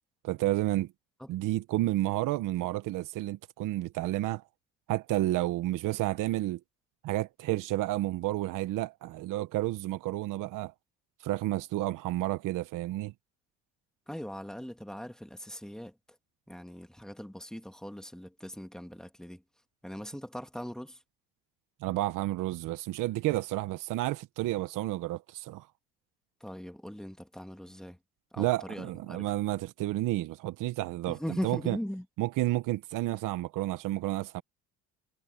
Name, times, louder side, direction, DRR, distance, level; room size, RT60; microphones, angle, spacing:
voice 1, 0.2-0.9 1.3-4.4 4.9-6.6 7.0-10.7 11.2-13.1 21.8-25.7 28.4-31.8 32.2-34.4, right 16 dB, 70° right, 1.1 m, -31 dB
voice 2, 14.1-15.9 16.5-19.4 19.8-21.0 26.4-28.0 28.3-29.2 31.1-32.1, equal, ahead, 2.1 m, -40 dB
cardioid pair, 105°, 33 cm